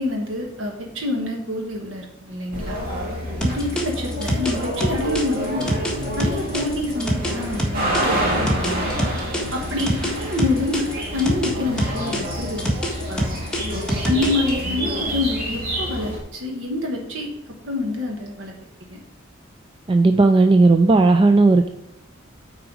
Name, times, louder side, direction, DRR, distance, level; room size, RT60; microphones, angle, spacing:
voice 1, 0.0-2.8 3.4-5.7 6.2-9.0 9.5-12.8 13.1-13.3 14.0-17.3 17.6-18.5 18.9-19.0, left 2 dB, 65° right, 1 dB, 1.4 m, -27 dB
sound 1, 2.5-16.2, equal, 45° right, 2.3 m, -28 dB
sound 2, 3.4-8.0 8.5-11.5 11.8-14.5, equal, 5° left, 1.6 m, -24 dB
voice 2, 19.9-21.7, right 3 dB, 25° right, 6 dB, 0.4 m, -14 dB
8.9 x 4.8 x 4.7 m, 0.82 s
head